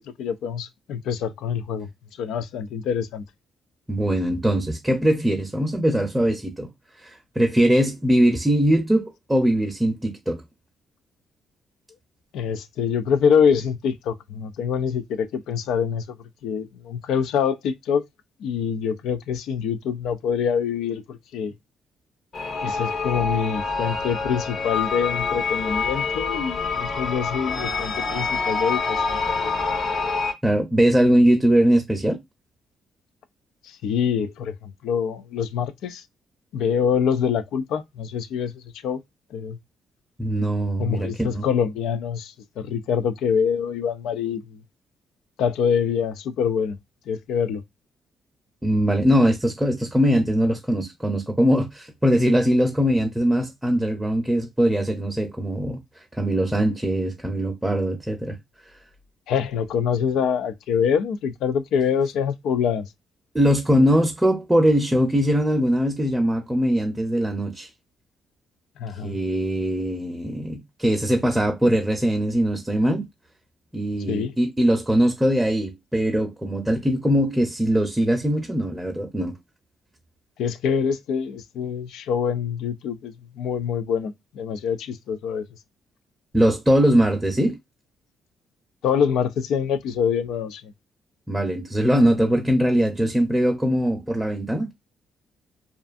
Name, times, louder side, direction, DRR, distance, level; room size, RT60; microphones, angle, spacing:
voice 1, 0.0-1.9 2.2-3.2 12.3-16.2 16.4-18.0 18.4-21.5 22.6-29.5 33.6-36.0 36.5-39.0 39.3-39.6 40.8-44.6 45.4-46.8 47.1-47.6 59.3-62.9 68.8-69.2 74.1-74.3 80.4-85.4 88.8-90.7, left 7 dB, 85° left, 0.3 m, -25 dB
voice 2, 3.9-6.7 7.0-10.4 30.4-32.2 40.2-41.4 48.6-55.8 56.1-58.4 63.3-67.7 69.0-73.1 73.7-79.4 86.3-87.6 91.3-94.7, equal, 10° right, 0.6 m, -21 dB
sound 1, 22.3-30.3, left 4 dB, 55° left, 0.8 m, -26 dB
2.5 x 2.4 x 2.4 m
cardioid pair, 90°, 0 cm